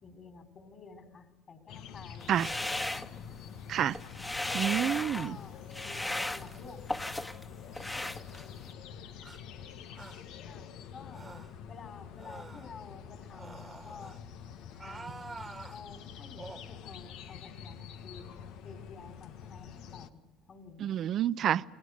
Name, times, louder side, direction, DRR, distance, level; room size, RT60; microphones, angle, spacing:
voice 1, 0.0-2.4 4.6-4.8 5.1-6.8 10.4-11.2 11.7-14.2 14.8-15.4 15.7-18.3 18.6-20.2 20.5-21.0, left 5 dB, 40° left, 7 dB, 4.4 m, -50 dB
sound 1, 1.7-20.1, left 8 dB, 70° left, 1.4 m, -47 dB
sound 2, 2.2-3.6 3.9-5.3 5.7-7.4 7.7-8.7, left 1 dB, 15° left, 1.6 m, -36 dB
voice 2, 4.5-5.4 20.8-21.6, right 10 dB, 55° right, 17 dB, 0.7 m, -28 dB
sound 3, 9.2-9.4 10.0-10.2 11.1-11.6 12.2-12.7 13.3-14.2 14.7-15.8 16.4-16.7, right 3 dB, 20° right, 1.6 m, -47 dB
29.5 x 21.0 x 6.6 m, 1.2 s
supercardioid pair, 75°, 0 cm